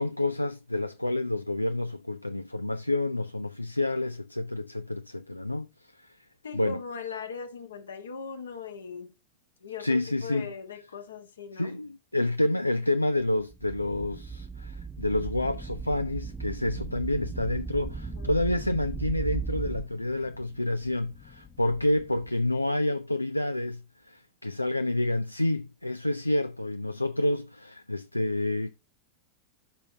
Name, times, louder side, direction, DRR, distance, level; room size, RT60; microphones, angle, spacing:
voice 1, 0.0-6.2 6.5-6.8 9.8-10.5 11.5-28.7, left 1 dB, 85° left, 0.3 m, -29 dB
voice 2, 6.4-9.1 9.6-11.7 18.0-18.3, left 6 dB, 70° left, 1.4 m, -39 dB
sound 1, 13.5-19.8, right 5 dB, 15° right, 0.3 m, -36 dB
sound 2, 15.1-22.3, left 5 dB, 20° left, 0.9 m, -53 dB
13.0 x 5.5 x 2.7 m
figure-of-eight pair, 90°, 0 cm